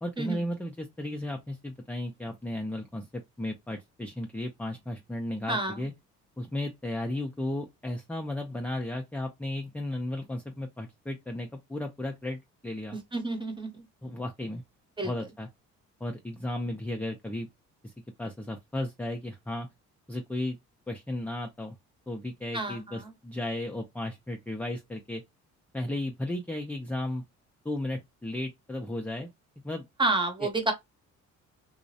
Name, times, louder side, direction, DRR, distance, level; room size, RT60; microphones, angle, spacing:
voice 1, 0.0-5.9 6.4-13.0 14.0-14.6 15.0-15.5 16.0-17.5 17.8-17.9 18.2-19.7 20.1-20.6 20.9-21.8 22.1-25.2 25.7-27.2 27.6-29.3 29.6-29.8 30.4-30.5, left 1 dB, 5° left, 0.4 m, -34 dB
voice 2, 5.5-5.8 12.9-13.8 15.0-15.1 22.5-23.1 30.0-30.7, right 2 dB, 15° right, 0.8 m, -29 dB
2.4 x 2.0 x 2.6 m
cardioid pair, 90°, 30 cm